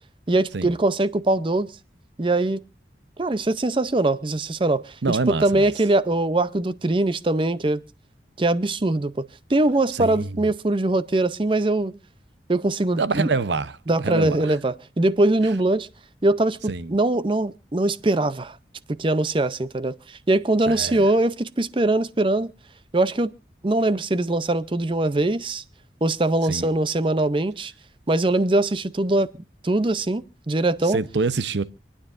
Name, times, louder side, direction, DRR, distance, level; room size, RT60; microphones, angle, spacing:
voice 1, 0.3-1.7 2.2-2.6 3.2-7.8 8.4-9.1 9.5-12.0 12.5-13.3 13.9-15.9 16.2-18.6 18.9-22.5 22.9-23.3 23.6-25.6 26.0-27.7 28.1-29.3 29.6-31.0, right 2 dB, 30° right, 0.5 m, -22 dB
voice 2, 5.0-5.6 9.9-10.4 13.0-14.5 16.7-17.0 20.7-21.1 26.5-26.7 30.8-31.6, right 3 dB, 75° right, 0.7 m, -26 dB
27.0 x 9.7 x 2.5 m
head